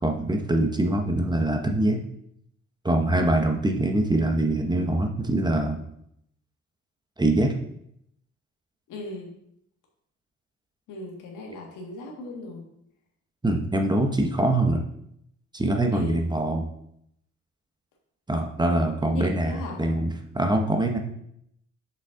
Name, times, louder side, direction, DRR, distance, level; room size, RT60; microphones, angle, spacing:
voice 1, 0.0-2.0 2.8-5.8 7.2-7.5 13.4-14.8 15.5-16.7 18.3-21.0, right 1 dB, 15° right, 3 dB, 0.8 m, -24 dB
voice 2, 8.9-9.3 10.9-12.6 15.9-16.2 19.1-19.8, left 2 dB, 90° left, 0 dB, 1.8 m, -37 dB
6.2 x 5.3 x 3.7 m, 0.75 s
cardioid pair, 90°, 30 cm